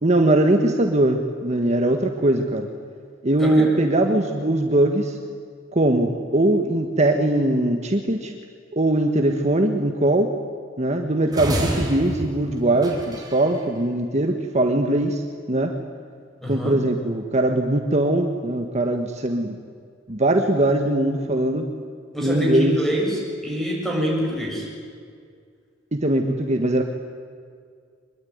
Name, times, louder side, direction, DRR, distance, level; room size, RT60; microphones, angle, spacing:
voice 1, 0.0-2.7 3.2-5.2 5.7-8.3 8.7-10.3 10.8-15.7 16.5-19.6 20.1-21.7 22.2-22.8 25.9-26.8, right 1 dB, 40° right, 4 dB, 1.5 m, -21 dB
voice 2, 3.4-3.7 16.4-16.8 22.1-24.7, equal, ahead, -2 dB, 7.4 m, -25 dB
sound 1, 11.3-13.6, right 1 dB, 20° right, 4.8 m, -29 dB
25.0 x 22.0 x 9.5 m, 2.1 s
head